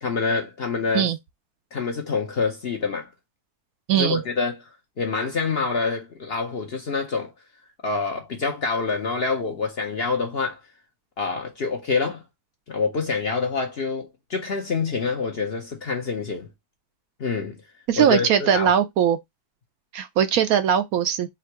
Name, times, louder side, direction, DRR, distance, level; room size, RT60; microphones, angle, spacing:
voice 1, 0.0-1.1 1.7-3.1 3.9-4.6 5.0-7.3 7.8-10.6 11.2-12.2 12.7-16.5 17.2-17.6 18.0-18.7, left 4 dB, 50° left, 0.8 m, -26 dB
voice 2, 3.9-4.2 17.9-19.2 19.9-21.3, right 9 dB, 70° right, 1.0 m, -20 dB
3.6 x 2.5 x 4.5 m
omnidirectional pair, 1.7 m